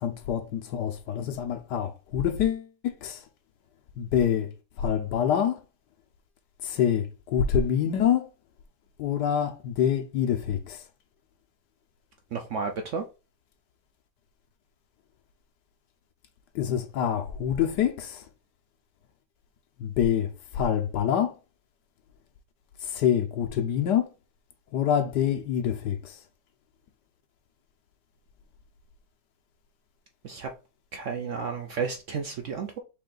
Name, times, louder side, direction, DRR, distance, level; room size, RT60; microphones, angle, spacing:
voice 1, 0.0-3.2 4.0-4.5 4.8-5.6 6.6-8.3 9.0-10.8 16.5-18.2 19.8-21.3 22.8-24.1 24.7-26.2, left 9 dB, 80° left, 1.3 m, -26 dB
voice 2, 12.3-13.0 30.2-30.5 30.9-32.8, right 5 dB, 65° right, 0.8 m, -32 dB
4.3 x 3.2 x 3.8 m
omnidirectional pair, 1.8 m